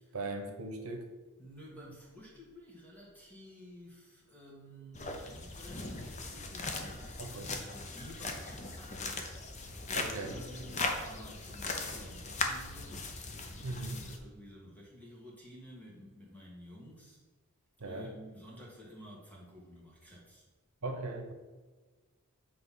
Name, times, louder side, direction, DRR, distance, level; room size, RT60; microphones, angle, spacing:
voice 1, 0.1-1.1 7.2-7.6 9.9-10.8 13.6-14.0 17.8-18.1 20.8-21.3, right 2 dB, 85° right, 5 dB, 1.0 m, -39 dB
voice 2, 1.4-9.3 10.2-13.2 13.8-17.2 17.8-20.4, equal, 5° left, -3 dB, 1.6 m, -52 dB
sound 1, 4.9-14.2, left 3 dB, 30° left, 0.7 m, -39 dB
7.9 x 3.4 x 5.7 m, 1.3 s
head